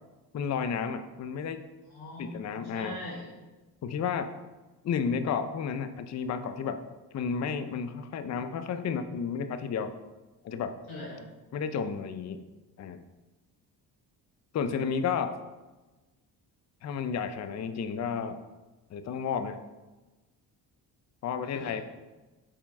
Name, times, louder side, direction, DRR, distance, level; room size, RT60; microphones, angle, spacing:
voice 1, 0.3-1.7 2.2-3.0 3.8-4.3 4.8-6.8 7.1-9.9 10.4-10.8 11.5-12.5 12.8-13.0 14.5-15.4 16.8-18.4 18.9-19.6 21.2-21.8, left 6 dB, 40° left, 10 dB, 0.5 m, -32 dB
voice 2, 1.9-3.3 10.9-11.2 21.5-21.8, left 1 dB, 65° left, -4 dB, 1.7 m, -41 dB
6.0 x 4.4 x 4.1 m, 1.2 s
cardioid pair, 85°, 42 cm